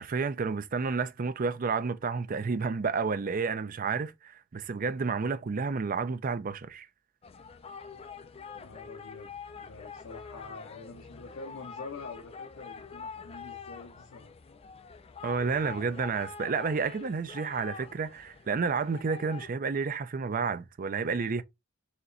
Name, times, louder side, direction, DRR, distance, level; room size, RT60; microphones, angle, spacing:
voice 1, 0.0-6.9 15.2-21.4, right 5 dB, 40° right, 0.5 m, -30 dB
sound 1, 7.2-19.5, left 5 dB, 30° left, 0.4 m, -45 dB
voice 2, 8.5-14.3, left 3 dB, 70° left, 0.7 m, -46 dB
4.3 x 3.0 x 2.5 m
head